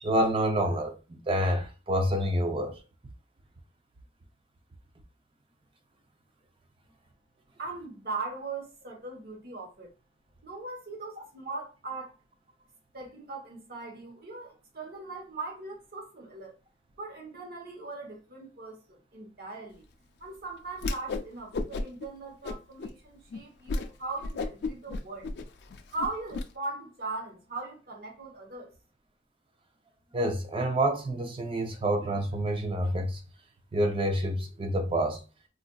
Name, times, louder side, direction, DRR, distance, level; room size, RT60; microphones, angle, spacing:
voice 1, 0.0-2.8 30.1-33.2 33.7-35.2, right 1 dB, 30° right, 0.5 m, -28 dB
voice 2, 7.6-9.9 10.4-12.2 12.9-16.5 17.0-19.8 20.2-25.3 25.9-28.7, right 3 dB, 55° right, 1.0 m, -39 dB
Whoosh swoosh swish, 20.8-21.3 21.5-22.1 22.4-22.9 23.3-23.4 23.7-23.9 24.2-26.4, left 3 dB, 60° left, 0.4 m, -33 dB
3.7 x 2.5 x 2.2 m
head